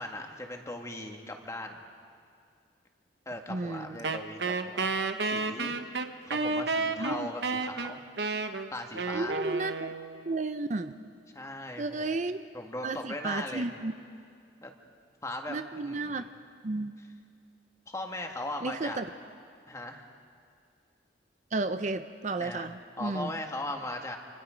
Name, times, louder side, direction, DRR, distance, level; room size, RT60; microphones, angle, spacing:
voice 1, 0.0-1.8 3.3-4.9 5.2-5.8 6.2-8.0 8.7-9.4 11.3-12.1 12.5-13.7 14.6-14.7 15.2-16.2 17.9-19.0 19.7-20.1 22.4-22.7 23.0-24.2, left 1 dB, 15° left, 3 dB, 1.7 m, -38 dB
voice 2, 3.5-4.0 7.0-7.3 9.1-9.9 10.3-10.9 11.8-12.4 12.8-13.9 15.5-16.2 16.6-16.9 18.6-19.0 21.5-23.3, right 3 dB, 40° right, 9 dB, 0.5 m, -33 dB
Wind instrument woodwind instrument, 4.0-10.3, right 3 dB, 65° right, 1.0 m, -31 dB
27.0 x 26.0 x 5.1 m, 2.3 s
head